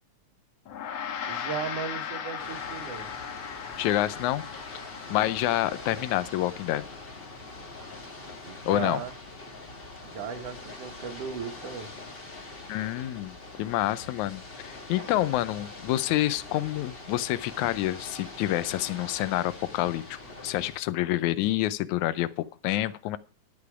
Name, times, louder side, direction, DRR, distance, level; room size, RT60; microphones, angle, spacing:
Gong, 0.7-10.3, left 7 dB, 60° left, 2.1 m, -40 dB
voice 1, 1.3-3.1 5.1-5.3 8.4-9.1 10.0-11.9, right 7 dB, 60° right, 8 dB, 2.3 m, -37 dB
Ocean / Boat Water vehicle, 2.4-20.8, left 2 dB, 25° left, 1.4 m, -43 dB
voice 2, 3.8-4.5 4.7-4.8 5.1-6.9 8.7-9.0 12.7-23.2, left 15 dB, 80° left, 16 dB, 2.0 m, -28 dB
12.0 x 8.5 x 4.7 m, 0.39 s
omnidirectional pair, 3.4 m